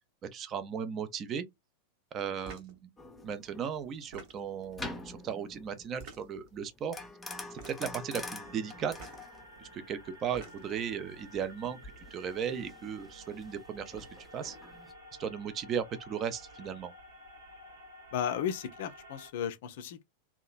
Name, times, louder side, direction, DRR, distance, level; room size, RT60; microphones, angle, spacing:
voice 1, 0.2-1.5 2.1-2.8 3.2-7.0 7.5-8.9 9.6-14.6 15.2-16.9, right 7 dB, 30° right, 0.5 m, -36 dB
sound 1, 2.4-2.8 3.9-4.6 5.9-6.5 7.5-8.0 8.9-9.2 10.1-10.8, right 4 dB, 45° right, 0.8 m, -49 dB
sound 2, 3.0-14.9, left 2 dB, 10° left, 0.6 m, -46 dB
sound 3, 8.3-19.3, equal, 75° right, 1.1 m, -52 dB
voice 2, 18.1-20.0, left 9 dB, 55° left, 0.4 m, -34 dB
2.8 x 2.2 x 2.4 m
figure-of-eight pair, 90°, 0 cm